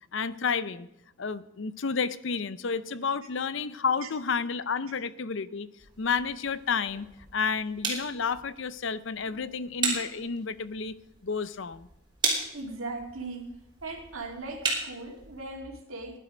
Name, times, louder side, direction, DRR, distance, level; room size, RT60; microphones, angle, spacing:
voice 1, 0.1-0.9 1.2-5.7 6.0-10.9 11.2-11.9, left 5 dB, 60° left, 15 dB, 0.6 m, -31 dB
sound 1, 5.8-15.6, right 3 dB, 20° right, 3.2 m, -36 dB
voice 2, 9.3-9.6 12.5-13.4 13.8-16.2, right 3 dB, 75° right, 2 dB, 2.4 m, -39 dB
15.5 x 11.0 x 5.1 m, 0.83 s
head